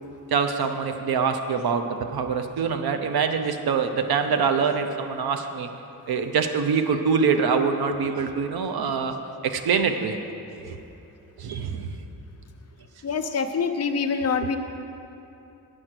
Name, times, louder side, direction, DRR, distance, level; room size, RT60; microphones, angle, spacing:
voice 1, 0.3-5.7 6.1-9.1 9.4-10.2 10.7-10.8 11.4-12.0 14.4-14.6, right 5 dB, 90° right, 7 dB, 0.7 m, -24 dB
voice 2, 13.0-14.6, left 5 dB, 45° left, 6 dB, 0.7 m, -25 dB
9.0 x 6.3 x 7.5 m, 2.9 s
wide cardioid pair, 140°, 36 cm